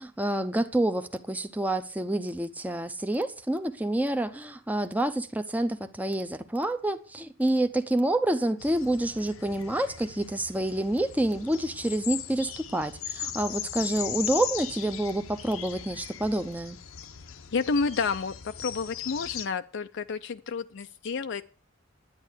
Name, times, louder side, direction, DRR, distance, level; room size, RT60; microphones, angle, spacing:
voice 1, 0.0-16.8, right 1 dB, 10° right, 0.7 m, -28 dB
sound 1, 8.6-19.5, left 9 dB, 85° left, 0.9 m, -39 dB
voice 2, 17.5-21.4, left 4 dB, 60° left, 0.5 m, -30 dB
11.0 x 9.5 x 6.5 m
head